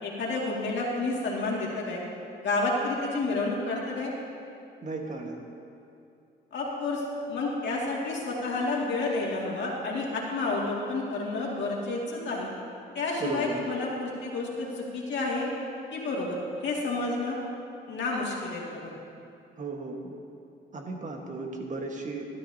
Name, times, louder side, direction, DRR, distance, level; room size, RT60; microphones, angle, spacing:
voice 1, 0.0-2.0 2.4-4.1 6.5-12.5 12.9-15.5 15.9-17.4 17.9-18.9, left 2 dB, 65° left, -3 dB, 2.3 m, -30 dB
voice 2, 4.8-5.4 13.2-13.6 19.6-20.1 20.7-22.3, right 3 dB, 40° right, 2 dB, 1.5 m, -35 dB
12.5 x 12.0 x 2.8 m, 2.6 s
cardioid pair, 90°, 20 cm